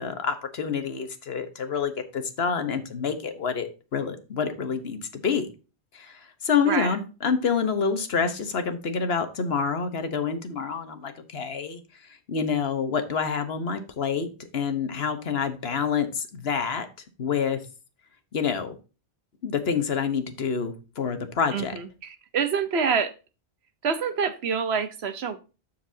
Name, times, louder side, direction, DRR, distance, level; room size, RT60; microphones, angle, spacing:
voice 1, 0.0-5.5 5.9-11.8 12.3-16.9 17.2-17.6 18.3-18.8 19.4-21.8, left 6 dB, 75° left, 8 dB, 1.3 m, -27 dB
voice 2, 21.5-23.1 23.8-25.4, right 6 dB, 80° right, 10 dB, 1.2 m, -27 dB
13.5 x 4.6 x 2.7 m, 0.32 s
omnidirectional pair, 1.1 m